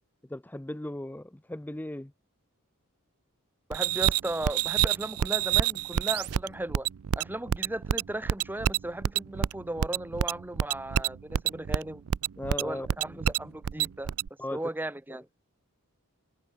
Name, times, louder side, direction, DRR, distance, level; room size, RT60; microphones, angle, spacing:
voice 1, 0.3-2.1 12.4-12.9 14.4-14.6, left 1 dB, 10° left, 0.5 m, -36 dB
voice 2, 3.7-6.9 7.2-12.0 12.6-14.1 14.5-15.3, right 1 dB, 10° right, 0.9 m, -36 dB
sound 1, 3.7-14.3, right 9 dB, 80° right, 0.4 m, -28 dB
head